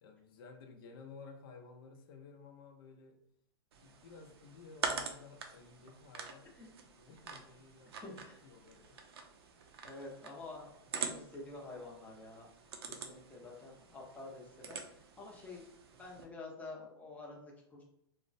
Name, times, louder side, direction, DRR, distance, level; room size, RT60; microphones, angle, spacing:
voice 1, 0.0-3.2 3.8-6.5 6.8-9.0, left 4 dB, 60° left, 5 dB, 0.5 m, -55 dB
sound 1, 3.7-16.2, right 5 dB, 75° right, 0.5 m, -45 dB
voice 2, 9.8-12.5 12.9-15.6 16.0-17.8, left 2 dB, 10° left, -2 dB, 0.6 m, -49 dB
3.0 x 2.0 x 2.5 m, 0.76 s
hypercardioid pair, 140°, 13 cm